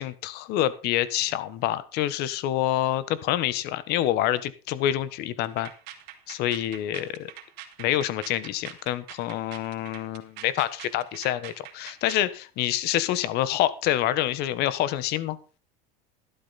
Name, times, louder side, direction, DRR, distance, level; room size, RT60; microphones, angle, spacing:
voice 1, 0.0-5.7 6.3-7.3 7.8-15.4, left 13 dB, 55° left, 16 dB, 1.4 m, -27 dB
sound 1, 5.4-12.3, right 12 dB, 60° right, 2.9 m, -44 dB
13.0 x 12.0 x 4.2 m, 0.34 s
supercardioid pair, 135°, 20 cm